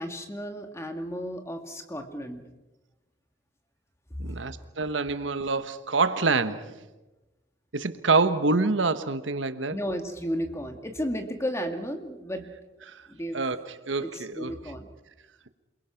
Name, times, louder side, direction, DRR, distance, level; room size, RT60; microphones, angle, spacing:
voice 1, 0.0-2.4 4.2-4.4 9.7-12.5 13.1-13.4 14.0-14.9, equal, 15° left, 2.1 m, -33 dB
voice 2, 4.2-6.8 7.7-9.8 12.9-13.0 13.3-14.5, right 3 dB, 80° right, 1.2 m, -26 dB
28.5 x 22.0 x 5.9 m
head